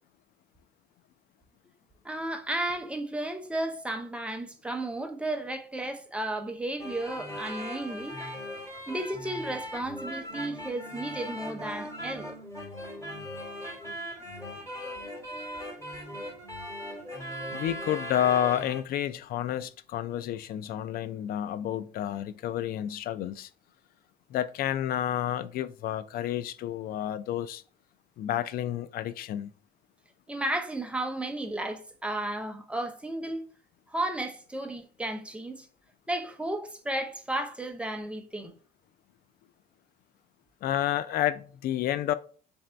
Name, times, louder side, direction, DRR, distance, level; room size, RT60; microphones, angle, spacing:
voice 1, 2.0-8.2 8.9-12.4 30.3-33.4 33.9-35.7 36.1-38.5, right 1 dB, 5° right, 0.6 m, -33 dB
sound 1, 6.8-18.9, equal, 15° left, 2.1 m, -39 dB
voice 2, 17.5-23.5 24.3-27.6 28.2-29.5 40.6-42.1, left 11 dB, 60° left, 0.4 m, -30 dB
3.2 x 2.6 x 4.3 m
cardioid pair, 110°, 17 cm